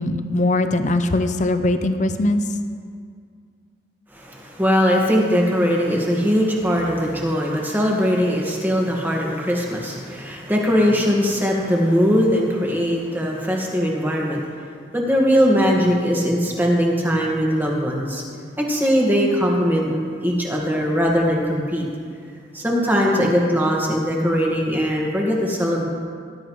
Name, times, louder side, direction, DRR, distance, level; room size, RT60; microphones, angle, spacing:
voice 1, 0.0-2.4, left 2 dB, 40° left, 8 dB, 0.6 m, -21 dB
voice 2, 4.1-14.5 14.9-18.2 18.6-19.9 20.2-21.8 22.5-25.8, equal, 10° right, -2 dB, 1.6 m, -20 dB
19.0 x 11.5 x 3.1 m, 2.1 s
head